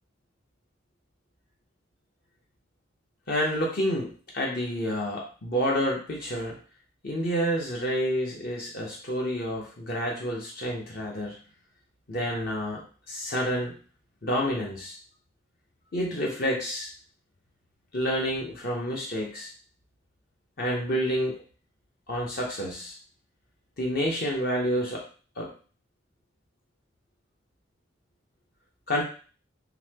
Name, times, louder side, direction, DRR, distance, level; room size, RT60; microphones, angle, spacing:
voice 1, 3.3-6.6 7.0-11.4 12.1-12.8 13.1-13.8 14.2-15.0 15.9-16.9 17.9-19.5 20.6-21.4 22.1-23.0 23.8-25.0 25.4-25.5 28.9-29.0, equal, 50° left, -2 dB, 0.8 m, -29 dB
4.0 x 2.7 x 2.8 m, 0.39 s
head